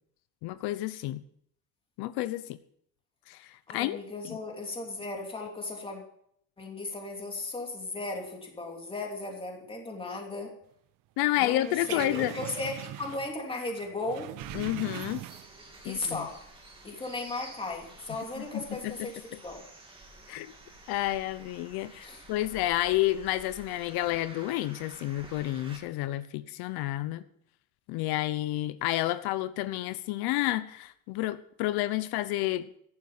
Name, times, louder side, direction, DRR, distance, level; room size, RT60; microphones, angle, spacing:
voice 1, 0.4-1.2 2.0-2.4 3.3-4.0 4.2-4.4 11.2-12.3 14.5-15.2 15.8-16.2 18.4-19.1 20.3-20.5 20.9-27.2 27.9-32.7, left 15 dB, 85° left, 13 dB, 0.9 m, -30 dB
voice 2, 3.7-6.0 6.6-10.6 11.4-14.4 15.8-16.4 16.8-19.6 22.0-22.3, left 2 dB, 15° left, 2 dB, 2.9 m, -36 dB
sound 1, 11.5-13.4 13.7-15.7 16.0-16.2, right 15 dB, 60° right, 0.7 m, -41 dB
sound 2, 14.4-25.8, right 2 dB, 15° right, 2.6 m, -50 dB
14.5 x 11.5 x 5.6 m, 0.68 s
cardioid pair, 175°, 37 cm